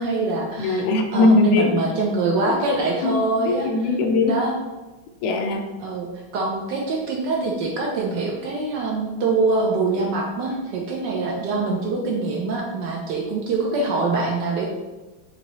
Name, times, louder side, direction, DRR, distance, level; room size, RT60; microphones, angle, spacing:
voice 1, 0.0-0.9 1.1-3.7 4.2-4.5 5.8-6.1 6.3-14.7, right 3 dB, 70° right, -1 dB, 1.1 m, -24 dB
voice 2, 0.6-1.7 3.0-4.4 5.2-5.7, left 3 dB, 85° left, 4 dB, 1.4 m, -20 dB
5.2 x 2.8 x 3.0 m, 1.2 s
omnidirectional pair, 2.3 m